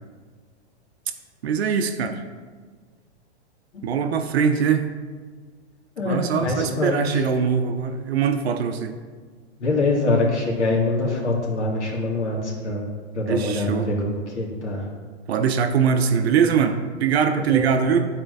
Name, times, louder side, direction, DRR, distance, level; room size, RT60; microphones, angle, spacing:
voice 1, 1.4-2.2 3.8-4.8 6.0-8.9 13.3-13.9 15.3-18.1, right 7 dB, 65° right, 7 dB, 0.6 m, -22 dB
voice 2, 6.0-7.2 9.6-12.8 13.1-14.9 17.3-17.8, left 2 dB, 85° left, -3 dB, 2.1 m, -24 dB
11.0 x 4.4 x 2.6 m, 1.5 s
hypercardioid pair, 160°, 34 cm